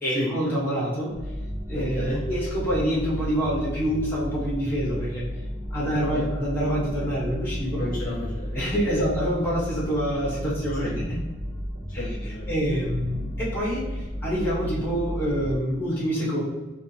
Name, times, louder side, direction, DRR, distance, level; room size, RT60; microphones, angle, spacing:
voice 1, 0.0-1.1 1.7-5.2 5.7-7.8 8.5-11.2 11.9-12.1 12.5-16.4, equal, 10° left, -6 dB, 1.4 m, -26 dB
sound 1, 1.1-15.6, equal, 85° right, 0.7 m, -33 dB
voice 2, 1.7-2.2 5.8-6.2 7.8-9.0 10.8-10.9 12.0-12.5, left 1 dB, 45° left, -5 dB, 1.0 m, -33 dB
3.7 x 2.6 x 4.2 m, 1.2 s
head